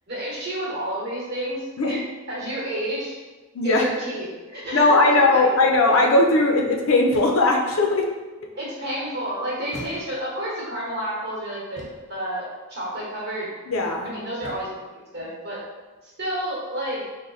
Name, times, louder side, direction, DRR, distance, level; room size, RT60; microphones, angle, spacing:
voice 1, 0.1-3.1 3.6-5.5 8.5-13.5 14.0-15.6 16.0-17.0, right 1 dB, 50° right, -6 dB, 1.1 m, -30 dB
voice 2, 3.5-3.9 4.7-8.1 13.7-14.1, left 2 dB, 80° left, 2 dB, 0.5 m, -19 dB
sound 1, 4.6-5.0 7.1-7.6 9.7-10.4 11.8-12.2 14.4-14.9, equal, 35° left, 0.6 m, -42 dB
3.1 x 2.1 x 3.8 m, 1.3 s
head